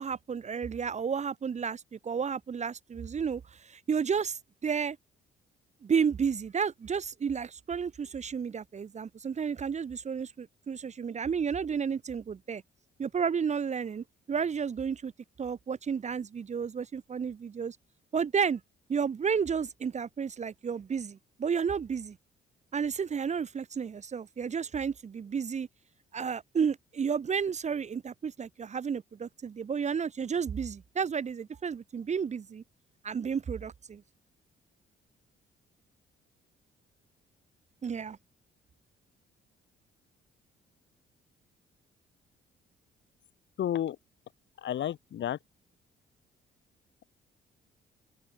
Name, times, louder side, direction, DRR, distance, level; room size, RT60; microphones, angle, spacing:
voice 1, 0.0-5.0 5.8-12.6 13.0-15.1 15.4-17.8 18.1-18.6 18.9-22.2 22.7-25.7 26.1-32.6 33.0-34.0 37.8-38.2, right 6 dB, 35° right, 0.7 m, -32 dB
voice 2, 43.6-44.0 44.6-45.4, left 11 dB, 70° left, 2.9 m, -31 dB
open air
cardioid pair, 90°, 20 cm